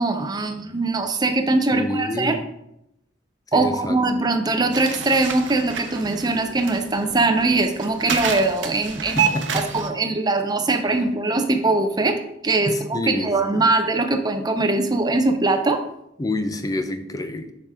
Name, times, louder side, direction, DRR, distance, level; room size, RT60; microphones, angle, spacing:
voice 1, 0.0-2.4 3.5-9.3 9.5-15.8, right 2 dB, 20° right, 6 dB, 0.6 m, -21 dB
voice 2, 1.7-2.4 3.5-4.0 9.0-9.9 12.6-13.6 16.2-17.5, left 1 dB, 20° left, 9 dB, 0.5 m, -28 dB
sound 1, 4.7-9.9, right 6 dB, 85° right, 0.8 m, -29 dB
7.0 x 4.9 x 3.6 m, 0.82 s
head